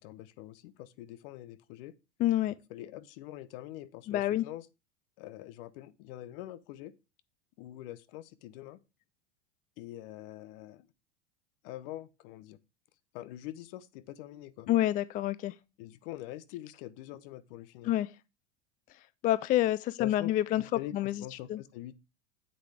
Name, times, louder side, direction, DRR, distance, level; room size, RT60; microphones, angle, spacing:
voice 1, 0.0-1.9 2.7-4.7 5.2-6.9 7.6-8.8 9.8-10.9 11.6-12.6 13.1-14.7 15.8-17.9 20.0-20.3 20.7-21.9, left 14 dB, 55° left, 0.9 m, -44 dB
voice 2, 2.2-2.5 4.1-4.4 14.7-15.5 17.8-18.1 19.2-20.6 20.9-21.2 21.5-21.6, left 13 dB, 25° left, 0.3 m, -27 dB
8.1 x 8.0 x 3.3 m
hypercardioid pair, 95°, 34 cm